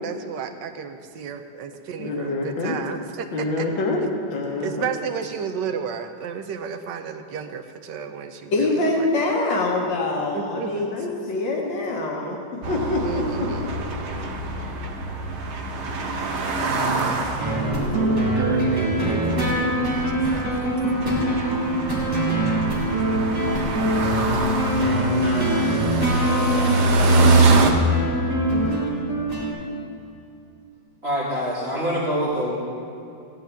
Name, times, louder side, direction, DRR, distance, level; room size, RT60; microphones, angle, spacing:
voice 1, 0.0-3.3 3.6-3.7 4.6-9.1 10.3-10.9 13.0-13.7 16.9-17.1 17.4-19.7, right 7 dB, 75° right, 7 dB, 1.2 m, -32 dB
voice 2, 2.0-2.8 3.3-4.0 4.3-4.9 8.5-12.4 12.7-13.7 17.5-18.1 18.5-18.7, left 2 dB, 85° left, -1 dB, 1.9 m, -25 dB
sound 1, 12.6-27.7, right 3 dB, 50° right, 0.9 m, -25 dB
sound 2, 17.4-29.5, right 1 dB, 10° right, 2.7 m, -23 dB
voice 3, 31.0-32.6, equal, 35° right, -8 dB, 2.0 m, -25 dB
16.0 x 10.0 x 3.4 m, 2.6 s
omnidirectional pair, 2.0 m